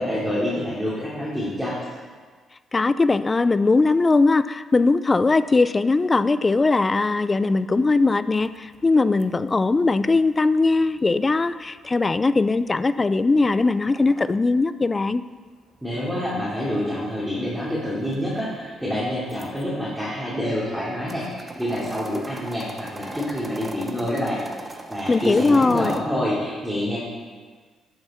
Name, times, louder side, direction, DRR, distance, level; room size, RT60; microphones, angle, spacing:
voice 1, 0.0-1.8 15.8-27.0, left 1 dB, ahead, -8 dB, 3.0 m, -27 dB
voice 2, 2.7-15.2 25.1-25.9, left 3 dB, 25° left, 14 dB, 0.4 m, -20 dB
sound 1, 8.3-14.2 15.5-19.6 20.2-26.0, right 2 dB, 25° right, 0.9 m, -40 dB
11.5 x 8.0 x 4.4 m, 1.5 s
cardioid pair, 90°, 0 cm